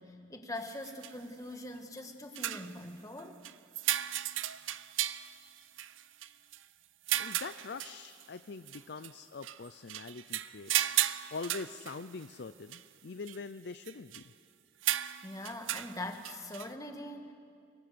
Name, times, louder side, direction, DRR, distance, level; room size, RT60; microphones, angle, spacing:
voice 1, 0.0-3.4 15.2-17.3, left 1 dB, 20° left, 5 dB, 1.7 m, -42 dB
sound 1, 0.6-1.1 2.0-2.1 2.3-2.8 3.2-6.6 7.1-8.2 8.7-9.1 9.4-12.3 12.7-12.8 13.3-13.4 13.8-14.2 14.8-16.7, right 13 dB, 85° right, 0.6 m, -35 dB
voice 2, 7.2-10.7 11.3-14.3, left 4 dB, 60° left, 12 dB, 0.5 m, -43 dB
24.5 x 23.0 x 6.9 m, 2.2 s
head